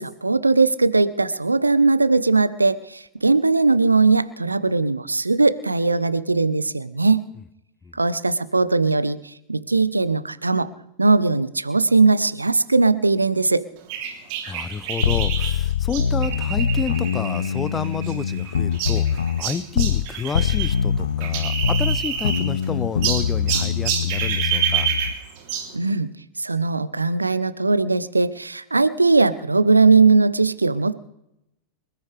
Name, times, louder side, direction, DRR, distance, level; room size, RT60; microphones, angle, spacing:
voice 1, 0.0-7.2 7.9-10.7 11.0-13.6 25.7-26.1 26.4-30.9, right 3 dB, 80° right, 15 dB, 0.8 m, -19 dB
sound 1, 13.9-20.7 21.0-22.7 23.0-25.7, right 8 dB, 45° right, 3.1 m, -28 dB
voice 2, 14.5-24.9, left 6 dB, 20° left, 16 dB, 0.8 m, -30 dB
sound 2, 15.0-20.1 20.3-25.1, left 7 dB, 70° left, 0.6 m, -23 dB
26.0 x 13.5 x 3.4 m, 0.83 s
figure-of-eight pair, 90°, 0 cm